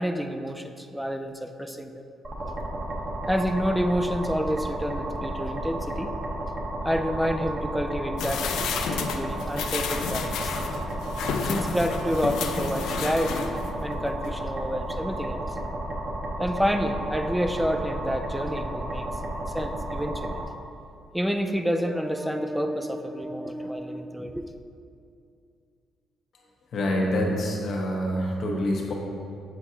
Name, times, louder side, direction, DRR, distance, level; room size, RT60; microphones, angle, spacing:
voice 1, 0.0-2.0 3.3-6.1 6.8-10.6 11.4-15.5 16.4-19.1 19.5-20.4 21.1-24.6, equal, 5° right, 6 dB, 0.4 m, -29 dB
sound 1, 2.2-20.4, right 1 dB, 35° right, 1.0 m, -32 dB
sound 2, 8.2-13.8 14.2-14.3, left 6 dB, 85° left, 0.4 m, -31 dB
voice 2, 26.7-28.9, equal, 60° left, -1 dB, 1.1 m, -26 dB
7.8 x 4.5 x 2.8 m, 2.4 s
cardioid pair, 90°, 0 cm